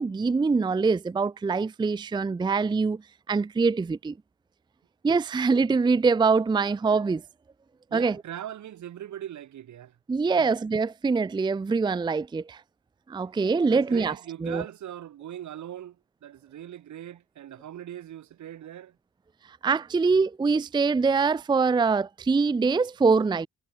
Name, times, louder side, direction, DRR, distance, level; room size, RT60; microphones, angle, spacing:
voice 1, 0.0-3.0 3.3-4.1 5.0-7.2 7.9-8.2 10.1-12.6 13.1-14.1 14.4-14.6 19.6-23.5, right 4 dB, 15° right, 0.5 m, -24 dB
voice 2, 7.9-10.0 10.4-10.5 13.7-16.0 16.2-18.9, right 11 dB, 70° right, 5.4 m, -40 dB
cardioid pair, 90°, 30 cm